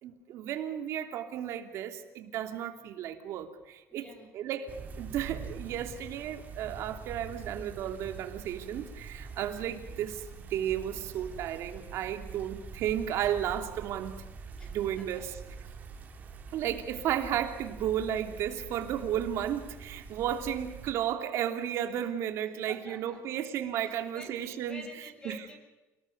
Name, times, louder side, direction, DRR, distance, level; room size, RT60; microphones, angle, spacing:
voice 1, 0.0-4.0 4.3-14.2 14.7-15.3 16.5-24.8 25.2-25.4, right 10 dB, 60° right, 6 dB, 3.0 m, -33 dB
voice 2, 3.9-4.4 7.2-7.3 12.1-12.5 14.6-15.3 19.8-19.9 22.7-23.4 23.8-25.6, equal, 15° left, 4 dB, 6.6 m, -50 dB
sound 1, 4.7-20.9, right 5 dB, 30° right, 3.7 m, -45 dB
29.0 x 19.5 x 6.7 m, 1.1 s
cardioid pair, 155°, 5 cm